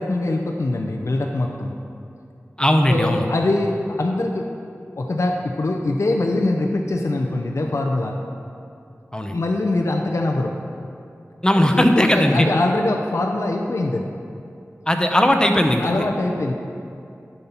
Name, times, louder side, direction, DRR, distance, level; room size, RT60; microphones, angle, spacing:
voice 1, 0.0-1.7 2.9-4.5 5.0-8.2 9.3-10.5 11.5-14.1 15.8-16.5, left 2 dB, 65° left, 1 dB, 0.5 m, -23 dB
voice 2, 2.6-3.3 9.1-9.4 11.4-12.5 14.9-16.1, left 1 dB, 15° left, 4 dB, 0.7 m, -18 dB
10.5 x 5.6 x 4.4 m, 2.5 s
wide cardioid pair, 60°, 5 cm